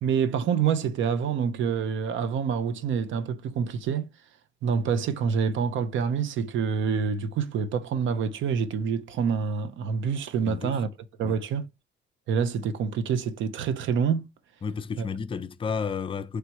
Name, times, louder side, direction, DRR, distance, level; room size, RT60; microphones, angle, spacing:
voice 1, 0.0-4.1 4.6-10.9 11.2-11.7 12.3-14.2 15.0-15.1, right 6 dB, 75° right, 0.7 m, -27 dB
voice 2, 10.4-10.8 11.2-11.3 14.6-16.4, left 5 dB, 25° left, 0.4 m, -32 dB
3.3 x 2.9 x 4.5 m
cardioid pair, 90°, 20 cm